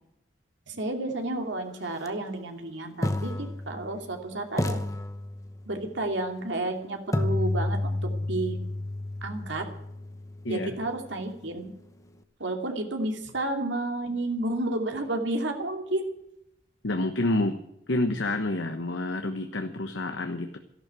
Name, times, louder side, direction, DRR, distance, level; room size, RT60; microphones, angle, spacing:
voice 1, 0.7-4.8 5.7-7.9 8.2-8.6 9.2-9.6 10.5-11.7 12.4-16.1, right 2 dB, 75° right, 4 dB, 2.7 m, -31 dB
sound 1, 1.9-2.1 3.0-4.2 4.6-5.8 7.1-11.0, left 1 dB, 15° left, 1.0 m, -31 dB
voice 2, 16.8-17.6 17.9-20.6, left 2 dB, 80° left, 6 dB, 1.2 m, -28 dB
13.5 x 12.0 x 7.7 m, 0.80 s
head